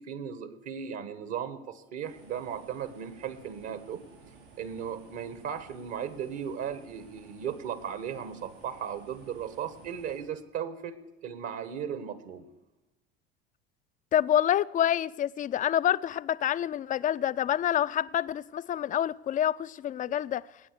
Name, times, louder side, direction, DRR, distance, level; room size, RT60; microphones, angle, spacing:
voice 1, 0.0-4.0 4.6-10.9 11.2-12.5, right 8 dB, 55° right, 1.3 m, -36 dB
sound 1, 2.0-10.2, right 4 dB, 70° right, 6.1 m, -55 dB
voice 2, 14.1-20.4, left 10 dB, 25° left, 0.4 m, -27 dB
20.0 x 9.0 x 6.6 m
hypercardioid pair, 70°, 31 cm